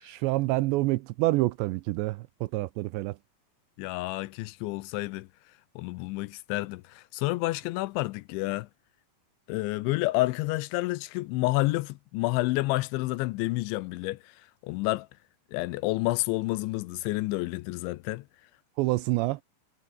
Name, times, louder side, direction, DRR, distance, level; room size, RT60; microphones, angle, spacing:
voice 1, 0.0-3.2 18.8-19.4, right 19 dB, 80° right, 2.7 m, -27 dB
voice 2, 3.8-5.3 5.8-8.7 9.5-15.1 15.5-18.3, left 20 dB, 85° left, 2.9 m, -29 dB
omnidirectional pair, 5.5 m